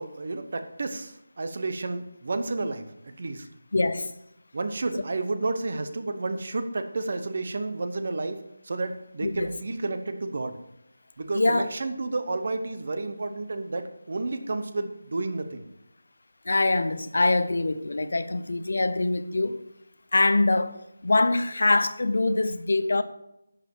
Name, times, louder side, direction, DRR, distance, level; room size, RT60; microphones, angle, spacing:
voice 1, 0.0-3.5 4.5-8.4 8.6-10.6 11.2-15.6, right 3 dB, 35° right, 0.8 m, -31 dB
voice 2, 3.7-4.1 9.2-9.5 11.3-11.7 16.5-19.6 20.1-20.8 21.0-23.0, left 2 dB, 55° left, 0.7 m, -24 dB
11.5 x 7.4 x 4.6 m
figure-of-eight pair, 180°, 0 cm